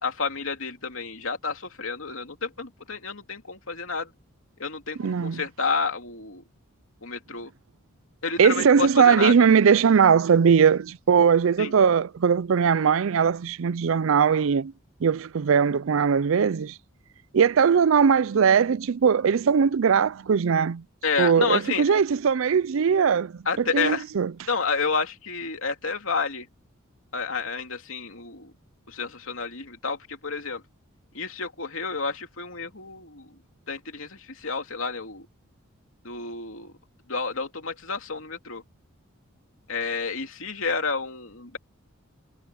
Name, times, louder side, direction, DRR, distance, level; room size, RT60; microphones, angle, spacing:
voice 1, 0.0-4.1 4.6-6.4 7.0-7.5 8.2-9.3 11.6-11.7 21.0-21.8 23.4-24.1 24.5-26.5 27.1-28.5 28.9-30.6 31.1-33.3 33.7-35.3 36.0-36.7 37.1-38.6 39.7-41.6, left 4 dB, 70° left, 3.0 m, -30 dB
voice 2, 5.0-5.4 8.4-14.7 15.0-16.8 17.3-20.8 21.2-23.4 23.7-24.3, right 6 dB, 65° right, 0.4 m, -20 dB
head